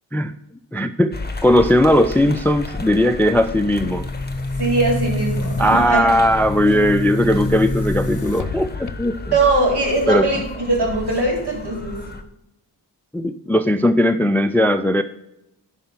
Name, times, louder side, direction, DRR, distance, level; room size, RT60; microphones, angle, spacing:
voice 1, 0.7-4.1 5.6-9.2 10.1-10.2 13.1-15.0, equal, 5° left, 11 dB, 0.4 m, -18 dB
sound 1, 1.1-12.2, left 3 dB, 20° left, 1.1 m, -32 dB
Boom, 3.6-9.4, left 2 dB, 45° left, 0.9 m, -28 dB
voice 2, 4.6-6.1 6.6-6.9 9.3-12.0, right 2 dB, 60° right, -1 dB, 3.9 m, -21 dB
11.0 x 4.9 x 5.7 m, 0.88 s
cardioid pair, 60°, 44 cm